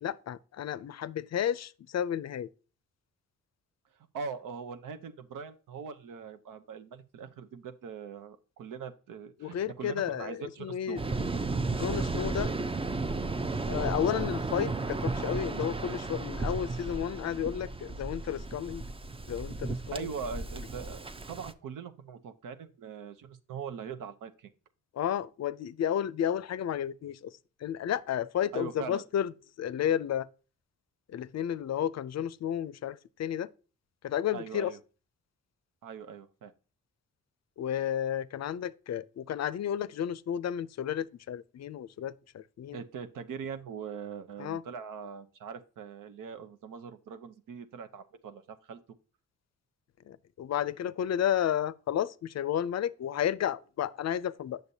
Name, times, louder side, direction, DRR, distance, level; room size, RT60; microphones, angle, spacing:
voice 1, 0.0-2.5 9.4-11.0 11.7-12.5 13.6-18.8 19.3-20.1 24.9-29.3 29.6-30.3 31.1-33.5 34.0-34.7 37.6-42.8 44.4-44.6 50.0-54.6, left 10 dB, 55° left, 0.5 m, -32 dB
voice 2, 4.1-11.0 19.9-24.5 28.5-29.0 34.3-34.8 35.8-36.5 42.7-48.8, right 6 dB, 85° right, 0.8 m, -41 dB
Waves surf, 11.0-21.5, right 3 dB, 20° right, 0.5 m, -34 dB
8.0 x 6.6 x 2.7 m
cardioid pair, 75°, 31 cm